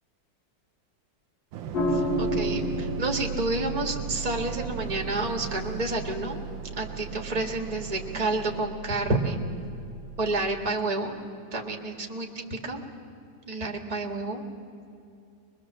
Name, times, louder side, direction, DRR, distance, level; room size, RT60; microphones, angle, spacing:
Waves surf, 1.5-8.7, right 8 dB, 80° right, 1.5 m, -40 dB
sound 1, 1.7-10.3, right 1 dB, 70° left, 4.1 m, -33 dB
voice 1, 1.9-6.4 6.8-9.4 10.2-11.2 11.5-12.8 13.5-14.4, right 2 dB, 20° right, 2 dB, 1.9 m, -30 dB
23.0 x 22.0 x 7.4 m, 2.6 s
omnidirectional pair, 2.1 m